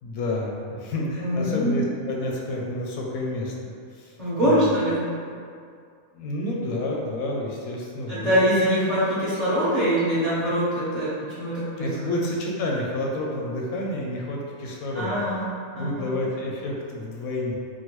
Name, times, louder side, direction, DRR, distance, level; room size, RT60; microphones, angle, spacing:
voice 1, 0.0-4.1 4.4-4.8 6.1-8.5 11.8-15.2 15.8-17.6, left 1 dB, 85° left, -2 dB, 1.0 m, -29 dB
voice 2, 1.2-1.8 4.2-5.0 8.1-11.9 14.9-16.1, equal, 30° right, -12 dB, 1.0 m, -24 dB
3.7 x 2.2 x 3.0 m, 2.2 s
omnidirectional pair, 1.5 m